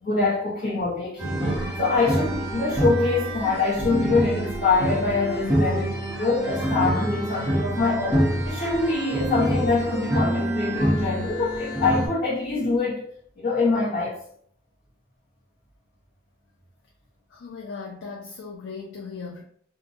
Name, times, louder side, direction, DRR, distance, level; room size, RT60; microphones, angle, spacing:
voice 1, 0.0-1.5 1.8-13.0 13.4-14.2, left 3 dB, 45° left, 0.8 m, -24 dB
sound 1, 1.2-12.1, right 1 dB, 10° right, 0.8 m, -26 dB
voice 2, 17.3-19.4, left 5 dB, 80° left, 0.4 m, -37 dB
2.7 x 2.1 x 2.6 m
head